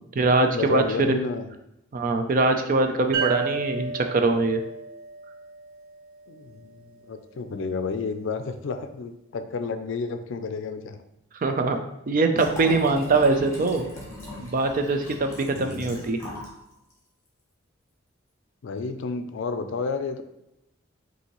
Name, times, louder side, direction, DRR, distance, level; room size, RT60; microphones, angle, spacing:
voice 1, 0.0-1.2 1.9-4.6 11.4-11.8 12.1-13.9 14.4-16.2, right 3 dB, 45° right, 6 dB, 0.4 m, -22 dB
voice 2, 0.5-1.5 6.3-11.0 15.5-16.0 18.6-20.2, left 4 dB, 70° left, 8 dB, 0.4 m, -31 dB
sound 1, 3.1-6.6, right 5 dB, 80° right, 0.9 m, -33 dB
Liquid, 12.3-16.6 16.9-17.0, left 1 dB, 15° left, 1.3 m, -40 dB
5.6 x 2.7 x 3.0 m, 0.87 s
head